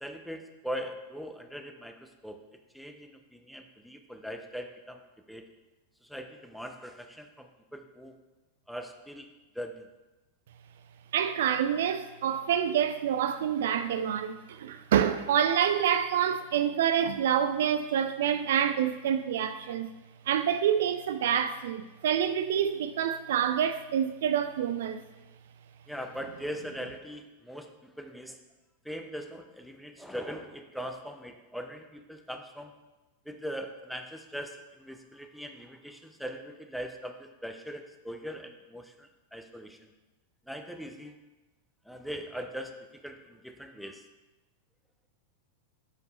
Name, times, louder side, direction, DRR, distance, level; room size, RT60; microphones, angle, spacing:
voice 1, 0.0-2.4 2.7-5.5 6.0-8.2 8.7-9.9 25.9-28.4 28.8-32.7 33.3-39.9 40.5-41.1 41.9-44.0, equal, ahead, 0.6 m, -41 dB
voice 2, 11.1-19.9 20.3-25.0, right 9 dB, 60° right, 0.3 m, -27 dB
6.3 x 5.2 x 4.3 m
figure-of-eight pair, 90°, 0 cm